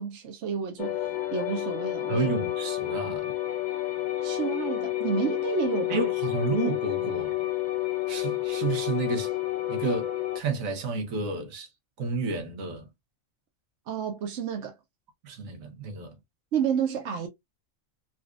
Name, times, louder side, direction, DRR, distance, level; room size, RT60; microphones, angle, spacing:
voice 1, 0.0-2.3 4.2-6.0 13.9-14.7 16.5-17.3, right 7 dB, 65° right, 1.0 m, -30 dB
sound 1, 0.8-10.4, left 15 dB, 50° left, 0.5 m, -30 dB
voice 2, 2.1-3.4 5.9-7.5 8.1-9.3 9.7-11.7 12.0-12.9 15.2-16.2, right 4 dB, 85° right, 1.3 m, -31 dB
4.0 x 2.4 x 2.3 m
omnidirectional pair, 1.4 m